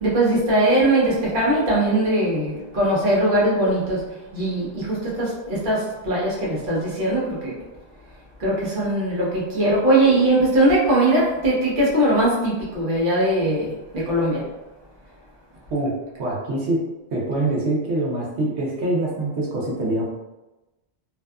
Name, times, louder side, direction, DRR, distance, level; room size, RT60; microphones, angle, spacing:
voice 1, 0.0-7.6 8.4-14.5, right 1 dB, 55° right, -6 dB, 0.9 m, -20 dB
voice 2, 16.2-16.8 17.1-20.0, right 2 dB, 85° right, -4 dB, 0.9 m, -24 dB
2.6 x 2.3 x 2.2 m, 1.0 s
omnidirectional pair, 1.1 m